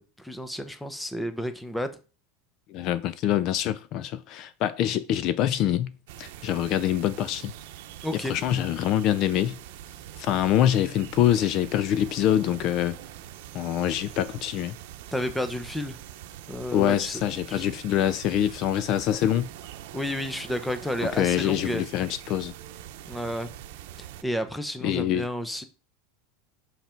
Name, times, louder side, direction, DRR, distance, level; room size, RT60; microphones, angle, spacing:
voice 1, 0.0-2.0 8.0-8.3 15.1-16.0 16.5-17.2 17.5-17.6 19.9-21.8 23.1-23.5 24.2-25.6, equal, 5° left, 0.7 m, -31 dB
voice 2, 2.7-5.9 6.2-7.5 8.1-9.6 10.2-13.0 13.5-14.8 16.7-19.5 21.0-22.5 24.8-25.3, left 11 dB, 45° left, 0.4 m, -25 dB
sound 1, 6.1-24.2, right 12 dB, 70° right, 0.8 m, -43 dB
5.7 x 5.7 x 4.5 m
supercardioid pair, 145°, 0 cm